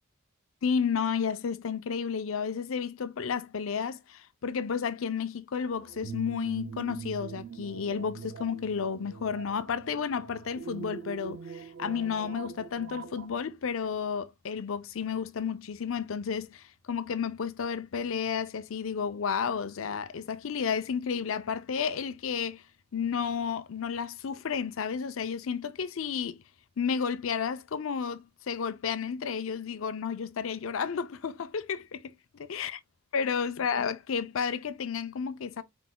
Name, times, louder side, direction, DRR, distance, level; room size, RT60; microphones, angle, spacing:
voice 1, 0.6-22.6 22.9-26.4 26.8-32.1 32.5-32.7 33.1-35.6, left 6 dB, 70° left, 0.5 m, -32 dB
sound 1, 5.6-13.3, right 6 dB, 70° right, 0.5 m, -43 dB
4.7 x 3.9 x 2.2 m
head